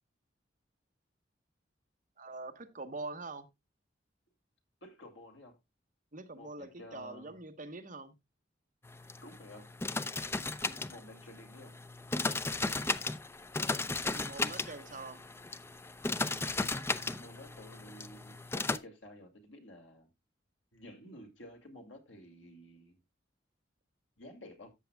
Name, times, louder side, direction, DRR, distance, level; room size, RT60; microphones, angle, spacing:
voice 1, 2.2-3.5 6.1-8.1 14.1-15.2, right 3 dB, 45° right, 1.1 m, -44 dB
voice 2, 4.8-5.6 6.3-7.4 9.2-9.6 10.6-11.7 17.2-20.1 20.7-23.0 24.2-24.7, left 1 dB, 85° left, 2.5 m, -52 dB
sound 1, 8.8-18.8, left 3 dB, 15° left, 0.4 m, -36 dB
13.0 x 8.1 x 2.3 m
head